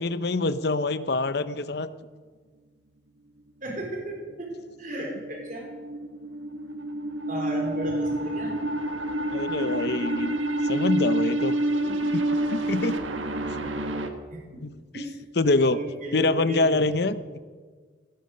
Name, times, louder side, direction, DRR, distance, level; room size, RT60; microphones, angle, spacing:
voice 1, 0.0-1.9 9.3-10.4 10.6-11.5 12.5-13.0 14.6-15.0 15.4-15.8 16.1-17.4, left 2 dB, 55° left, 13 dB, 0.7 m, -25 dB
voice 2, 3.6-4.5 4.8-5.6 7.3-8.6 11.8-12.1 14.3-14.4 14.9-15.2 15.6-16.9, right 1 dB, 45° right, -1 dB, 4.0 m, -34 dB
sound 1, 4.9-14.1, right 1 dB, 80° right, 1.5 m, -28 dB
17.5 x 12.0 x 6.6 m, 1.5 s
head